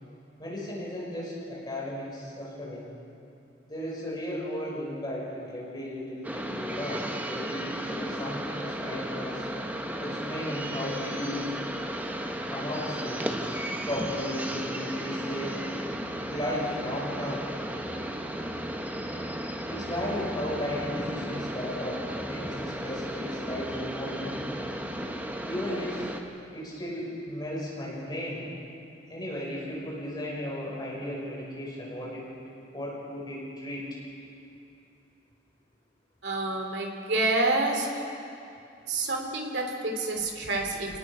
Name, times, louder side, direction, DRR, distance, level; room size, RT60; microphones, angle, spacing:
voice 1, 0.4-2.9 3.7-9.5 10.0-11.6 12.5-13.4 13.8-15.7 16.2-17.4 19.7-24.7 25.4-26.1 26.5-28.5 29.1-32.3 32.7-33.8, left 1 dB, 20° left, -5 dB, 5.7 m, -35 dB
sound 1, 6.2-26.2, equal, 10° right, 1.1 m, -34 dB
voice 2, 36.2-37.9 38.9-41.0, right 2 dB, 65° right, 1 dB, 3.0 m, -28 dB
28.5 x 19.0 x 5.0 m, 2.6 s
head